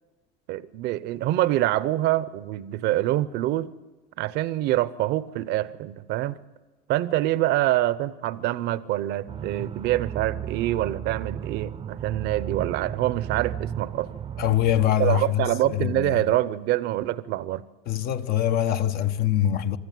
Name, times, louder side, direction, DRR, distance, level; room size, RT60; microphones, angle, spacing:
voice 1, 0.5-3.7 4.2-6.4 6.9-14.1 15.0-17.6, right 15 dB, 65° right, 0.7 m, -25 dB
sound 1, 9.3-14.9, right 9 dB, 30° right, 0.6 m, -34 dB
voice 2, 14.4-16.3 17.9-19.8, left 11 dB, 60° left, 1.0 m, -24 dB
25.0 x 13.0 x 9.2 m
supercardioid pair, 105°, 18 cm